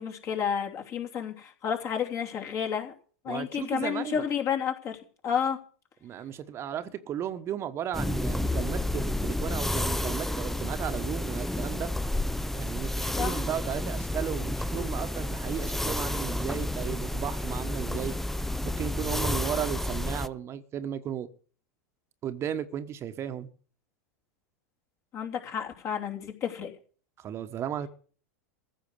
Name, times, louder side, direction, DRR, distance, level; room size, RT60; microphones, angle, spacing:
voice 1, 0.0-2.9 3.2-5.0 5.2-5.6 13.2-13.4 25.1-26.7, left 8 dB, 40° left, 3.0 m, -31 dB
voice 2, 3.3-4.2 6.0-11.9 12.5-18.1 18.6-21.3 22.2-23.5 27.2-27.9, right 9 dB, 35° right, 1.2 m, -35 dB
sound 1, 7.9-20.3, left 1 dB, 5° left, 0.5 m, -30 dB
15.0 x 6.3 x 9.8 m
hypercardioid pair, 90°, 8 cm